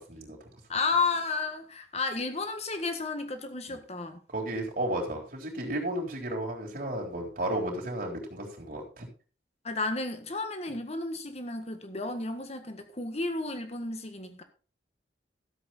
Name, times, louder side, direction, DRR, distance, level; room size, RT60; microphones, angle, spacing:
voice 1, 0.7-4.2 9.6-14.4, left 3 dB, 35° left, 1.5 m, -32 dB
voice 2, 4.3-9.1, right 1 dB, 50° right, 3.6 m, -33 dB
13.5 x 7.8 x 4.2 m
head